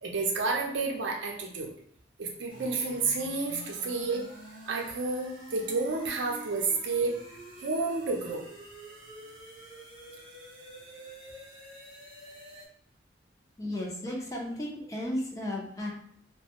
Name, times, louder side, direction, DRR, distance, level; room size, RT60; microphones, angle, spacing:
voice 1, 0.0-1.7 2.2-4.3 4.7-7.2 7.6-8.4, right 3 dB, 75° right, 0 dB, 0.5 m, -30 dB
sound 1, 2.5-12.7, right 1 dB, 25° right, 0.6 m, -48 dB
voice 2, 13.6-15.9, left 1 dB, 15° left, -2 dB, 0.4 m, -34 dB
2.2 x 2.0 x 2.8 m, 0.66 s
head